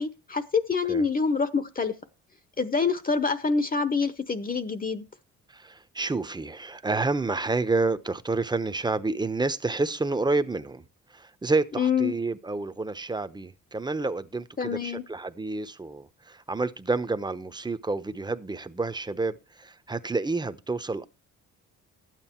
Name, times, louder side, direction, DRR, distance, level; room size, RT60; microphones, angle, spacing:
voice 1, 0.0-2.0 2.6-5.0 11.8-12.1 14.6-15.0, left 5 dB, 30° left, 0.9 m, -26 dB
voice 2, 5.5-10.8 11.1-21.1, right 3 dB, 15° right, 0.9 m, -29 dB
12.0 x 9.2 x 4.5 m
cardioid pair, 90°, 30 cm